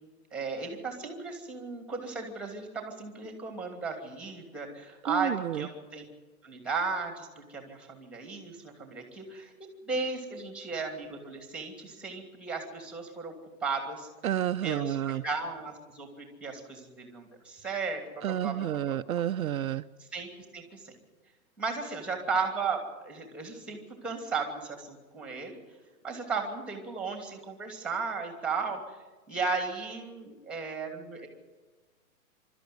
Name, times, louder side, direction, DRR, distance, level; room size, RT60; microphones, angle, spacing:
voice 1, 0.3-6.0 6.4-13.3 13.6-14.1 14.6-19.0 20.0-21.0 21.6-25.6 26.0-29.0 29.3-31.3, right 4 dB, ahead, 4 dB, 2.7 m, -35 dB
voice 2, 5.1-5.7 14.2-15.2 18.2-19.8, right 11 dB, 70° right, 9 dB, 0.8 m, -30 dB
24.5 x 13.0 x 9.5 m, 1.2 s
hypercardioid pair, 165°, 44 cm